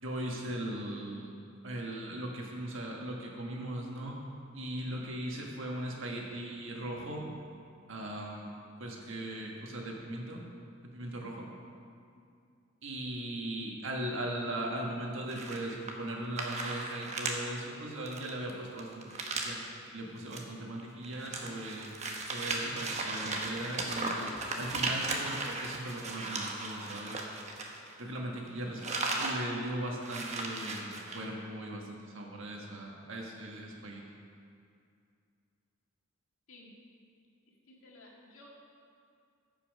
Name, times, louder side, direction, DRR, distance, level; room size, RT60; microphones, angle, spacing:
voice 1, 0.0-1.3 1.6-4.2 4.5-7.3 7.9-10.4 10.9-11.4 12.8-19.2 19.4-19.6 19.9-21.9 22.3-27.2 28.0-34.0, right 1 dB, 60° right, -1 dB, 1.6 m, -39 dB
sound 1, 15.3-16.1 16.4-17.4 17.7-17.8 18.1-19.6 20.2-20.4 20.8-28.2 28.5-29.4 29.7-29.8 30.0-31.2, right 3 dB, 35° right, 1.0 m, -36 dB
voice 2, 37.7-38.5, left 2 dB, 70° left, -2 dB, 1.9 m, -55 dB
14.0 x 5.8 x 5.4 m, 2.4 s
head